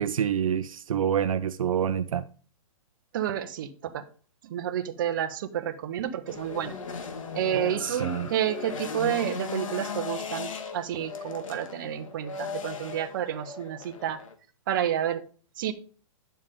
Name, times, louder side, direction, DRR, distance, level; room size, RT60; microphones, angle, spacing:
voice 1, 0.0-2.3 7.8-8.3, right 9 dB, 70° right, 0.6 m, -27 dB
voice 2, 3.1-4.0 4.5-6.7 7.3-14.2 14.7-15.2 15.6-15.7, right 10 dB, 35° right, 1.0 m, -30 dB
sound 1, 6.3-14.3, left 5 dB, 65° left, 1.8 m, -37 dB
10.0 x 7.4 x 3.6 m
hypercardioid pair, 170°, 18 cm